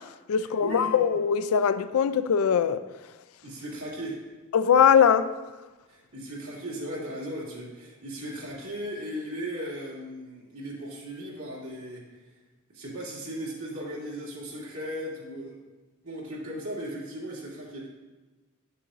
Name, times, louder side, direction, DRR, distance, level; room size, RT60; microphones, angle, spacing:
voice 1, 0.0-2.8 4.5-5.3, left 7 dB, 85° left, 0.4 m, -22 dB
voice 2, 0.6-0.9 3.4-4.2 5.9-12.1 12.7-15.6 16.0-17.9, equal, 90° right, 2.4 m, -37 dB
9.9 x 6.8 x 2.5 m
head